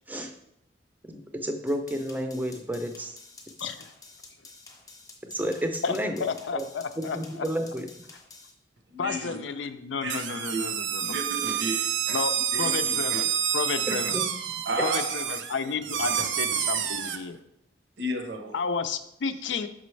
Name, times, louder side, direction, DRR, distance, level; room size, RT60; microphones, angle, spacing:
voice 1, 1.0-3.1 5.3-6.2 6.5-6.7 7.0-7.9 13.9-14.2, equal, 10° right, 0.5 m, -31 dB
sound 1, 1.7-8.5, left 3 dB, 20° left, 0.8 m, -50 dB
voice 2, 3.6-3.9 5.8-7.5 9.0-11.1 12.1-13.3 13.5-14.2 14.8-17.4 18.5-19.7, left 5 dB, 85° left, 0.5 m, -32 dB
voice 3, 8.9-9.4 10.0-13.2 14.6-15.8 16.1-16.2 16.7-17.2 18.0-18.6, right 1 dB, 70° right, 0.8 m, -34 dB
sound 2, 10.1-17.2, right 9 dB, 90° right, 0.5 m, -28 dB
6.1 x 5.1 x 3.2 m
head